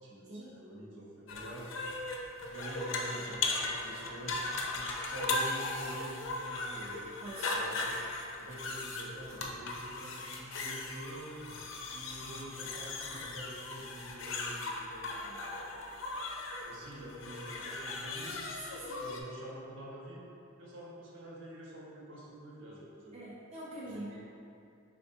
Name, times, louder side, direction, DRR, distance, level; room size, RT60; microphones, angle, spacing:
voice 1, 0.0-1.7 2.4-4.4 4.7-7.0 7.5-8.0 8.4-11.5 11.9-15.5 16.6-18.4 18.8-20.2 20.6-23.2 23.8-24.2, right 1 dB, 65° right, -5 dB, 0.8 m, -47 dB
sound 1, 1.3-19.2, left 2 dB, 65° left, 0.4 m, -38 dB
voice 2, 7.2-7.6 18.2-19.0 23.1-24.2, right 1 dB, 30° right, -7 dB, 0.4 m, -44 dB
4.3 x 3.4 x 2.7 m, 2.5 s
head